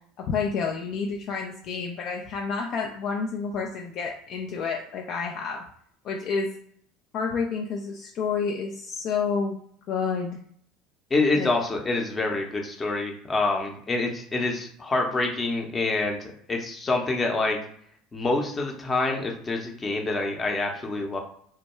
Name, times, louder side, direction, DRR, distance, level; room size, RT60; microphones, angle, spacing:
voice 1, 0.2-5.6 6.0-6.6 7.1-9.6 9.9-10.4 11.3-11.5, left 5 dB, 50° left, 1 dB, 0.3 m, -29 dB
voice 2, 11.1-17.6 18.1-21.2, left 3 dB, 25° left, 2 dB, 0.7 m, -26 dB
2.2 x 2.2 x 3.0 m, 0.62 s
hypercardioid pair, 70°, 0 cm